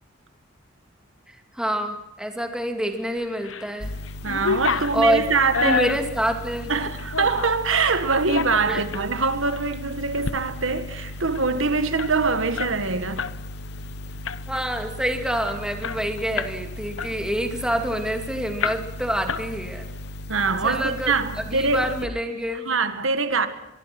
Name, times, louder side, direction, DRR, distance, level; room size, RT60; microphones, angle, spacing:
voice 1, 1.3-3.9 4.7-5.3 5.6-6.7 8.7-8.8 14.5-19.9 20.6-22.7, right 1 dB, 5° right, 2.5 m, -27 dB
sound 1, 3.2-3.7 4.0-7.6 8.1-9.1 9.5-9.7 10.1-10.4 10.7-10.8 11.1-13.4 13.7-13.9 14.3-14.7 15.2-15.3 15.5-16.6 17.0-18.2 18.6-19.0 19.3-19.9, left 5 dB, 85° left, 1.0 m, -29 dB
sound 2, 3.8-22.1, left 1 dB, 55° left, 1.2 m, -37 dB
voice 2, 4.2-5.8 6.7-13.3 20.3-21.9 22.7-23.5, right 4 dB, 85° right, 1.8 m, -23 dB
23.5 x 23.0 x 6.1 m
head